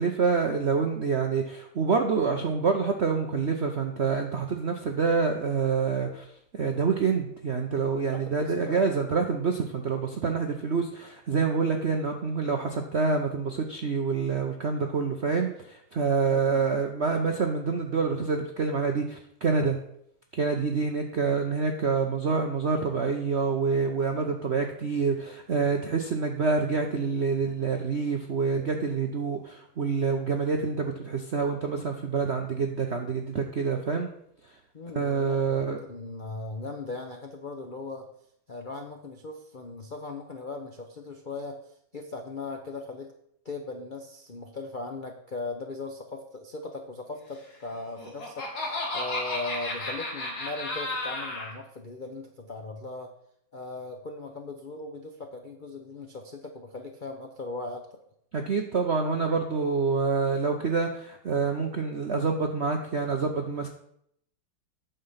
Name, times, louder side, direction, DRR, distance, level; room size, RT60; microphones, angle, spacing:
voice 1, 0.0-6.3 6.5-19.8 20.3-34.1 34.9-35.8 58.3-63.7, right 5 dB, 65° right, 4 dB, 0.6 m, -27 dB
voice 2, 8.1-9.0 16.3-16.6 34.7-38.1 38.5-41.6 41.9-43.1 43.4-53.1 53.5-57.9, left 3 dB, 75° left, 3 dB, 0.4 m, -38 dB
Laughter, 47.8-51.5, left 2 dB, 50° left, 2.4 m, -33 dB
8.9 x 6.8 x 5.7 m, 0.72 s
omnidirectional pair, 2.3 m